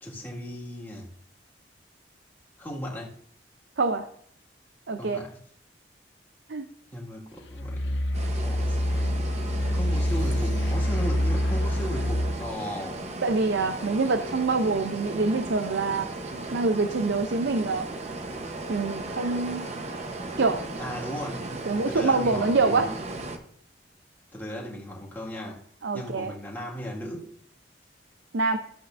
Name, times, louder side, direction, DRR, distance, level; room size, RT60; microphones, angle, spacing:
voice 1, 0.0-1.1 2.6-3.2 5.0-5.4 6.9-8.0 8.4-9.1 9.7-13.0 20.8-21.4 21.9-22.9 24.3-25.6 25.9-27.3, equal, 10° left, 1.9 m, -36 dB
voice 2, 3.8-4.1 4.9-5.2 6.5-6.7 13.2-17.9 18.7-19.7 20.4-20.6 21.7-22.9 25.8-26.3 28.3-28.6, right 3 dB, 85° right, 0.6 m, -25 dB
sound 1, 7.5-12.5, left 1 dB, 90° left, 0.6 m, -26 dB
sound 2, 8.1-23.4, right 2 dB, 40° right, 0.9 m, -36 dB
12.5 x 7.7 x 2.6 m
head